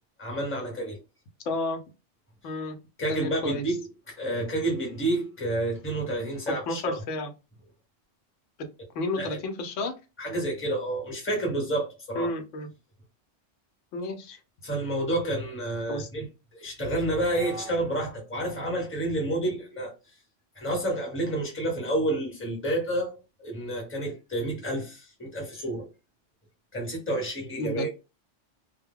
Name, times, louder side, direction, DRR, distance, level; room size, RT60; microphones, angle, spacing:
voice 1, 0.2-1.0 3.0-7.0 9.2-9.4 10.2-12.3 14.6-16.3 16.5-19.9 20.5-25.9 26.7-27.9, right 1 dB, 10° left, 0.8 m, -29 dB
voice 2, 1.5-1.8 2.4-2.8 3.1-3.6 6.5-7.3 8.9-10.0 12.1-12.7 13.9-14.4 15.9-16.1 27.6-27.9, left 2 dB, 90° left, 1.0 m, -31 dB
2.1 x 2.1 x 3.6 m
omnidirectional pair, 1.2 m